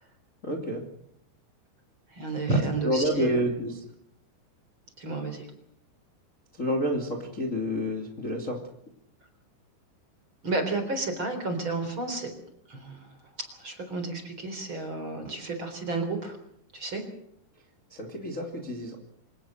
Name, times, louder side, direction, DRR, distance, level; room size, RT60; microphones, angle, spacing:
voice 1, 0.4-0.8 2.8-3.8 6.6-8.6 17.9-19.0, equal, 20° left, 1 dB, 2.4 m, -29 dB
voice 2, 2.1-3.4 5.0-5.5 10.4-12.3 12.7-13.1 13.4-16.4 16.7-17.0, right 3 dB, 30° right, 6 dB, 4.2 m, -31 dB
26.5 x 18.5 x 6.6 m, 0.72 s
omnidirectional pair, 5.3 m